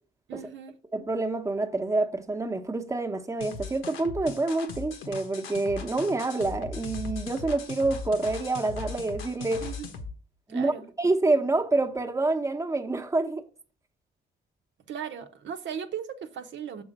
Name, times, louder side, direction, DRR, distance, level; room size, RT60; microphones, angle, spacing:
voice 1, 0.3-0.7 9.6-9.9 10.5-10.9 14.9-16.8, right 8 dB, 70° right, 0.9 m, -37 dB
voice 2, 0.9-9.7 10.5-10.7 11.0-13.4, right 2 dB, 15° right, 1.0 m, -27 dB
sound 1, 3.4-10.1, left 4 dB, 85° left, 1.2 m, -38 dB
7.1 x 3.8 x 6.5 m
cardioid pair, 90°, 20 cm